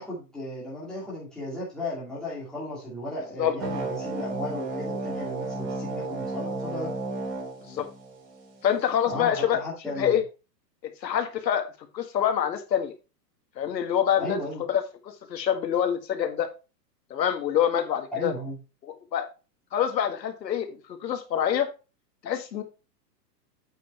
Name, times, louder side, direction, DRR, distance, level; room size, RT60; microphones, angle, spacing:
voice 1, 0.0-6.9 9.1-10.2 14.2-14.6 18.1-18.6, left 1 dB, ahead, -8 dB, 2.4 m, -35 dB
sound 1, 3.6-8.6, right 2 dB, 70° right, 3.5 m, -33 dB
voice 2, 8.6-9.6 9.9-10.2 11.0-11.7 11.9-12.9 13.6-14.8 15.3-16.5 17.1-18.3 19.1-19.3 19.7-21.7 22.2-22.6, left 9 dB, 85° left, 6 dB, 1.9 m, -26 dB
8.4 x 5.5 x 4.3 m, 0.31 s
hypercardioid pair, 180°, 50 cm